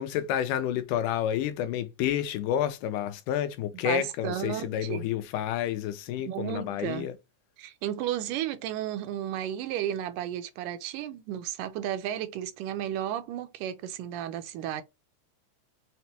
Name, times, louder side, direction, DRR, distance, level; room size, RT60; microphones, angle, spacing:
voice 1, 0.0-7.1, left 10 dB, 85° left, 2.1 m, -29 dB
voice 2, 3.8-5.1 6.2-7.1 7.6-14.8, right 11 dB, 80° right, 2.2 m, -33 dB
5.9 x 2.2 x 2.8 m
omnidirectional pair, 3.7 m